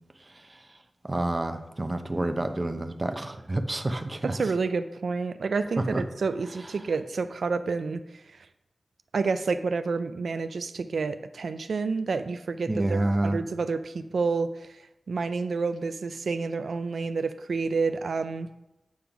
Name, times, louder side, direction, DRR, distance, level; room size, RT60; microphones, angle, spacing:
voice 1, 1.0-4.4 5.8-6.0 12.7-13.4, right 1 dB, 25° right, 7 dB, 0.6 m, -28 dB
voice 2, 4.2-8.5 9.1-14.8 15.1-18.5, right 4 dB, 85° right, 10 dB, 0.3 m, -29 dB
8.5 x 3.7 x 5.8 m, 0.92 s
wide cardioid pair, 110°, 0 cm